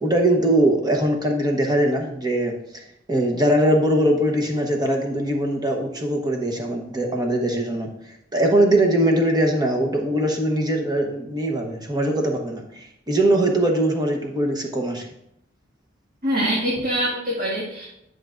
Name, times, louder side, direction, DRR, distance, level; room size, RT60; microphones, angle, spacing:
voice 1, 0.0-2.5 3.1-7.9 8.3-12.6 13.1-15.1, right 1 dB, 20° right, 2 dB, 1.1 m, -21 dB
voice 2, 16.2-17.9, equal, 45° right, -5 dB, 1.8 m, -24 dB
10.5 x 6.4 x 2.5 m, 0.77 s
head